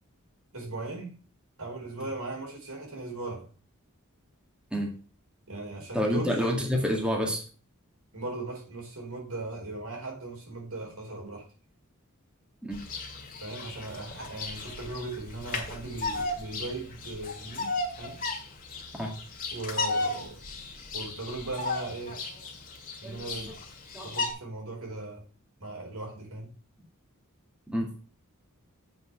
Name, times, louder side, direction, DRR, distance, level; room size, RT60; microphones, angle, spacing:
voice 1, 0.5-1.1 1.6-3.5 5.5-6.4 8.1-11.4 13.4-18.2 19.5-20.4 20.9-22.2 23.0-23.6 24.0-25.2 25.6-26.5, right 2 dB, 80° right, 0 dB, 4.4 m, -38 dB
voice 2, 5.9-7.4 12.6-12.8 18.9-19.1 23.0-23.3 23.9-24.1 27.7-27.9, equal, 5° right, 0 dB, 1.9 m, -28 dB
Bird vocalization bird call bird song, 12.7-24.3, left 3 dB, 40° left, 2.0 m, -35 dB
8.1 x 5.5 x 6.3 m, 0.38 s
head